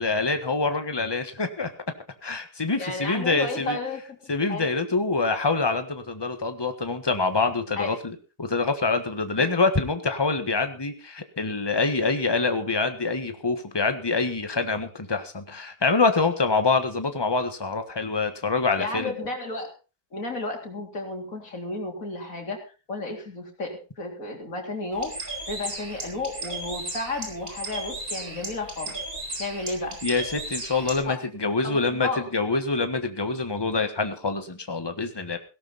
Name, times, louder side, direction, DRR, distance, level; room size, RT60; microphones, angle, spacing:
voice 1, 0.0-1.7 2.2-3.8 4.3-19.1 30.0-35.4, left 3 dB, 15° left, 8 dB, 1.4 m, -25 dB
voice 2, 2.7-4.2 4.5-4.7 7.8-7.9 9.4-9.5 18.8-19.7 20.1-22.6 22.9-29.0 29.4-30.0 31.0-31.2 31.6-32.3, left 2 dB, 60° left, 2 dB, 3.9 m, -32 dB
Bird, 24.9-31.0, right 2 dB, 70° right, 4.5 m, -35 dB
17.5 x 12.0 x 4.1 m, 0.34 s
omnidirectional pair, 1.6 m